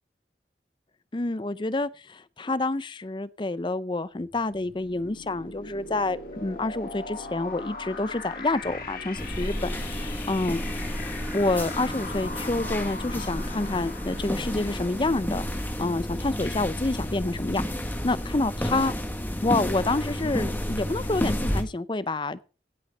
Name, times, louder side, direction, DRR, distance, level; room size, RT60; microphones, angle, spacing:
voice 1, 1.1-10.6 11.3-15.4 15.8-17.6 18.0-18.9 19.4-22.4, left 2 dB, 25° left, 0.5 m, -28 dB
sound 1, 4.2-15.9, left 3 dB, 55° left, 2.2 m, -40 dB
sound 2, 8.6-9.1 9.7-10.2 10.8-11.3 13.0-13.5 14.1-14.6 15.2-15.7, equal, 80° right, 7.4 m, -48 dB
sound 3, 9.2-21.6, equal, 10° left, 1.5 m, -31 dB
16.5 x 6.2 x 5.4 m
head